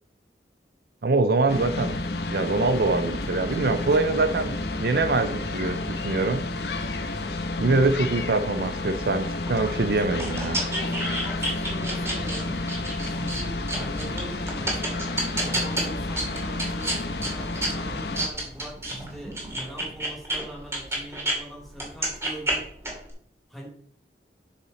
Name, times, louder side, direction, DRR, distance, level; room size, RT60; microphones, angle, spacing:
voice 1, 1.0-2.0 2.3-4.5 4.8-6.4 7.6-10.6, right 3 dB, 60° right, 9 dB, 0.6 m, -24 dB
sound 1, 1.5-18.3, left 2 dB, 70° left, 1.0 m, -31 dB
sound 2, 9.5-21.4 21.7-23.1, right 1 dB, 15° right, 2.3 m, -31 dB
voice 2, 10.5-15.1 15.3-22.7 23.5-23.7, right 1 dB, ahead, -2 dB, 2.7 m, -42 dB
12.0 x 5.8 x 4.2 m, 0.63 s
head